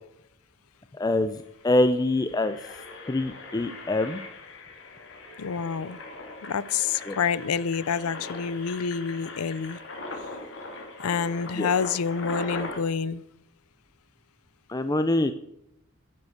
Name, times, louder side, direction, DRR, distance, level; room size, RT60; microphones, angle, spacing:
voice 1, 0.9-2.6 3.1-4.2 7.1-7.2 11.6-11.7 14.7-15.3, left 2 dB, 15° left, 10 dB, 0.4 m, -25 dB
Engine, 1.4-1.6 2.1-12.8, left 2 dB, 60° left, 2.4 m, -40 dB
voice 2, 5.4-6.0 6.4-9.8 11.0-13.2, left 6 dB, 90° left, 18 dB, 0.5 m, -28 dB
11.0 x 7.3 x 6.4 m, 0.82 s
head